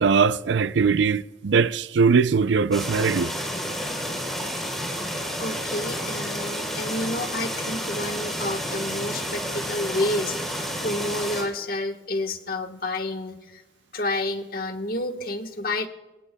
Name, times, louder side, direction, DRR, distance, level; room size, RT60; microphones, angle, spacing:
voice 1, 0.0-3.3, right 5 dB, 80° right, 0.4 m, -21 dB
sound 1, 2.7-11.4, equal, ahead, 3.5 m, -30 dB
voice 2, 5.4-13.6 13.9-15.9, left 2 dB, 55° left, 1.3 m, -30 dB
27.0 x 17.0 x 2.3 m
head